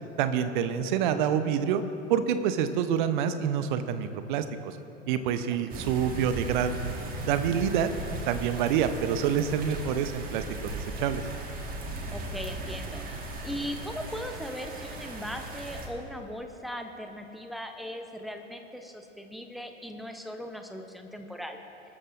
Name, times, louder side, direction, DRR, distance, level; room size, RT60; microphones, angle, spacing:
voice 1, 0.2-1.8 2.1-4.8 5.1-6.8 7.2-7.9 8.3-11.2, right 8 dB, 40° right, 11 dB, 0.8 m, -27 dB
voice 2, 5.5-5.9 12.1-21.6, equal, ahead, 5 dB, 0.6 m, -39 dB
sound 1, 5.7-15.9, right 2 dB, 25° right, 1.6 m, -37 dB
21.0 x 13.0 x 2.5 m, 2.9 s
figure-of-eight pair, 95°, 37 cm